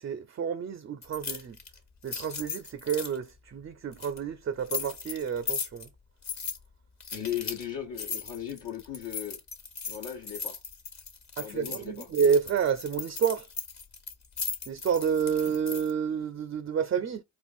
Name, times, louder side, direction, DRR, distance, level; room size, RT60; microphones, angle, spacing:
voice 1, 0.0-1.6 2.0-5.9 11.4-13.5 14.7-17.2, right 7 dB, 30° right, 0.4 m, -29 dB
sound 1, 1.0-3.2 3.9-4.2 4.7-5.9 6.2-6.6 7.0-7.7 8.0-15.9, left 5 dB, 35° left, 1.0 m, -37 dB
voice 2, 7.1-9.4 9.9-10.6 11.4-12.1, left 10 dB, 65° left, 1.2 m, -37 dB
4.4 x 2.4 x 2.4 m
hypercardioid pair, 40°, 48 cm